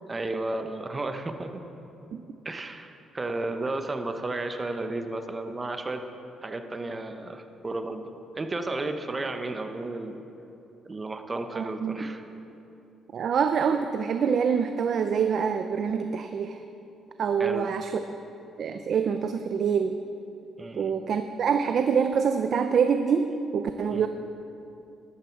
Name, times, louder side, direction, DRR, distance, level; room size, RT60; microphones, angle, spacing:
voice 1, 0.1-1.6 2.4-6.0 6.4-10.2 10.9-12.2 17.4-17.7 20.6-20.9 23.9-24.1, right 2 dB, 25° right, 7 dB, 1.0 m, -33 dB
voice 2, 11.5-12.0 13.1-16.6 17.2-17.9 18.6-20.0 20.8-24.1, right 6 dB, 55° right, 7 dB, 0.5 m, -25 dB
13.0 x 12.0 x 4.7 m, 2.8 s
cardioid pair, 100°, 0 cm